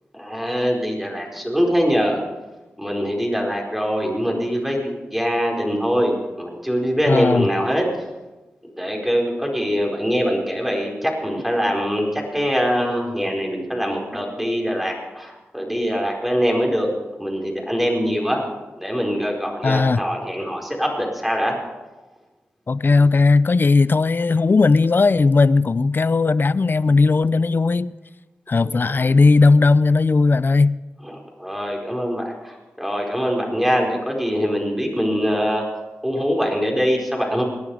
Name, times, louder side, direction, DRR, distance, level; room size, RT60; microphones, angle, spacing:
voice 1, 0.1-2.2 2.8-7.8 8.8-16.9 17.2-18.4 18.8-21.5 28.6-28.7 29.0-29.2 31.0-35.6 36.0-37.4, equal, 5° right, 4.6 m, -23 dB
voice 2, 7.1-7.5 19.6-20.0 22.7-27.9 28.5-30.8, left 3 dB, 45° left, 0.5 m, -17 dB
18.5 x 10.5 x 4.9 m
cardioid pair, 50°, 5 cm